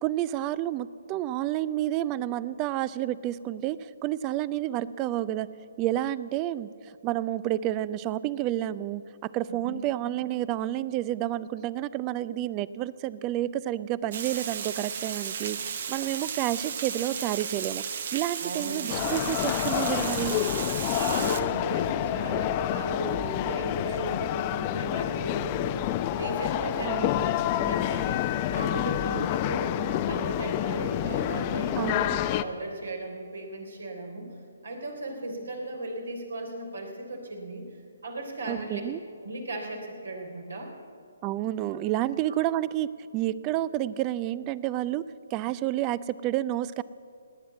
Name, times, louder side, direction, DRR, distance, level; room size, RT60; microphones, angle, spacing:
voice 1, 0.0-5.5 5.8-15.6 15.9-17.8 18.1-20.4 26.8-27.1 31.8-32.1 38.5-39.0 41.2-42.9 43.1-45.0 45.3-46.8, right 13 dB, 25° right, 18 dB, 0.4 m, -30 dB
voice 2, 9.5-9.8 18.4-19.1 20.9-27.2 27.5-31.9 32.4-34.3 34.6-37.7 38.0-38.8 39.2-40.7 42.3-42.4, right 1 dB, 75° right, 2 dB, 3.4 m, -36 dB
Water, 14.1-21.4, right 7 dB, 50° right, 0.9 m, -34 dB
sound 1, 18.9-32.4, left 12 dB, 30° left, 0.6 m, -28 dB
18.0 x 9.4 x 8.3 m, 2.3 s
figure-of-eight pair, 140°, 0 cm